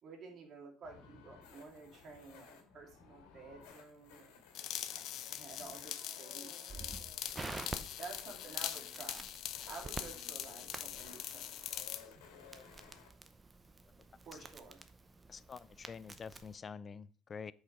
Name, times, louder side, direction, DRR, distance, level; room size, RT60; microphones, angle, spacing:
voice 1, 0.0-4.4 4.9-5.0 5.3-7.0 8.0-11.6 14.2-14.8, right 4 dB, 40° right, 2.7 m, -52 dB
sound 1, 0.8-13.1, left 6 dB, 85° left, 2.2 m, -58 dB
sound 2, 4.5-12.0, left 11 dB, 55° left, 0.7 m, -43 dB
Crackle, 6.7-16.5, right 3 dB, 15° right, 0.7 m, -49 dB
voice 2, 15.3-17.5, left 6 dB, 25° left, 0.4 m, -47 dB
8.2 x 5.2 x 5.2 m
cardioid pair, 135°, 0 cm